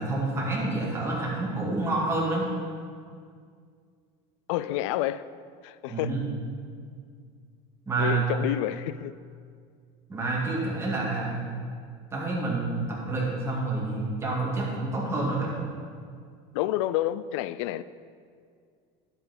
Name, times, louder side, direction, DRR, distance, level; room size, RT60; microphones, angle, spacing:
voice 1, 0.0-2.5 5.9-6.3 7.9-8.2 10.1-11.4 12.1-15.5, right 2 dB, 15° right, 2.3 m, -28 dB
voice 2, 4.5-5.2 5.6-6.1 8.0-9.1 16.5-17.8, left 13 dB, 90° left, 0.4 m, -29 dB
11.0 x 5.7 x 5.9 m
cardioid pair, 155°, 15 cm